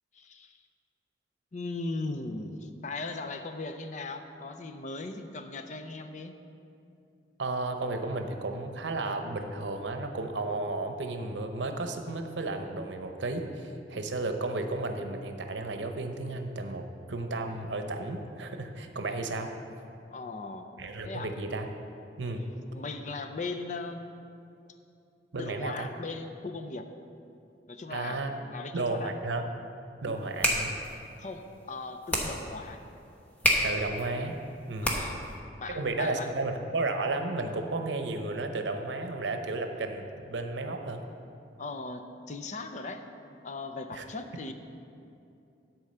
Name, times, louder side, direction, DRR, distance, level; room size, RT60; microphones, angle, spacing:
voice 1, 0.1-0.6 1.5-6.3 20.1-20.7 21.0-21.3 22.2-24.1 25.4-26.9 27.7-29.1 31.2-32.8 34.8-35.2 35.6-36.4 41.6-43.1 43.4-44.5, left 3 dB, 40° left, 7 dB, 0.5 m, -38 dB
voice 2, 7.4-19.5 20.8-21.7 22.2-22.4 25.3-25.9 27.9-28.3 28.7-29.5 30.0-30.7 33.6-34.4 34.7-35.1 35.7-41.0 43.9-44.0, right 2 dB, 90° right, 5 dB, 0.7 m, -33 dB
sound 1, 30.1-35.4, equal, 10° left, 1.0 m, -31 dB
10.5 x 4.7 x 6.7 m, 2.6 s
head